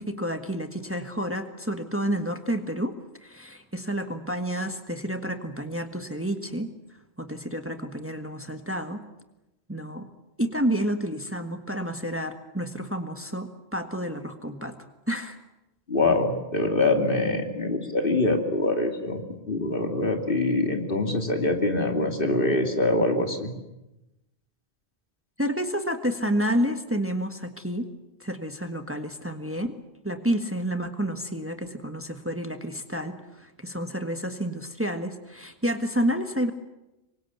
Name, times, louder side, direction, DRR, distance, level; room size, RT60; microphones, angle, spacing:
voice 1, 0.0-2.9 3.2-6.7 7.2-9.1 9.7-10.1 10.4-14.8 15.1-15.4 25.4-27.9 28.2-29.7 30.0-36.5, equal, 10° right, 7 dB, 1.5 m, -30 dB
voice 2, 15.9-23.5, left 2 dB, 55° left, 4 dB, 2.9 m, -24 dB
26.5 x 23.5 x 8.2 m, 0.96 s
omnidirectional pair, 1.1 m